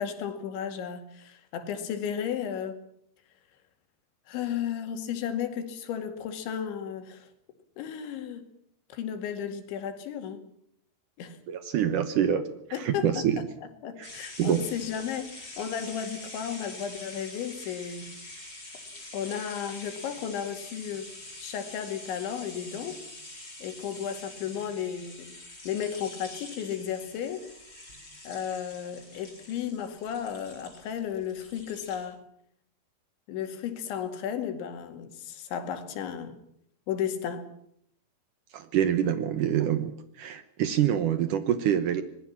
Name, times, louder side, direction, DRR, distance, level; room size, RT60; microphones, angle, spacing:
voice 1, 0.0-2.8 4.3-7.3 7.8-8.4 8.9-10.4 11.2-11.4 12.7-13.3 13.8-18.2 19.1-21.1 21.4-23.0 23.6-25.3 25.7-27.4 28.3-32.2 33.3-36.4 36.9-37.4, left 8 dB, 90° left, 7 dB, 4.6 m, -34 dB
voice 2, 11.5-13.4 14.0-14.1 14.4-14.7 38.5-42.0, right 9 dB, 75° right, 11 dB, 1.9 m, -26 dB
sound 1, 14.0-32.0, left 2 dB, 20° left, 7.9 m, -45 dB
25.0 x 20.5 x 7.3 m, 0.70 s
omnidirectional pair, 5.1 m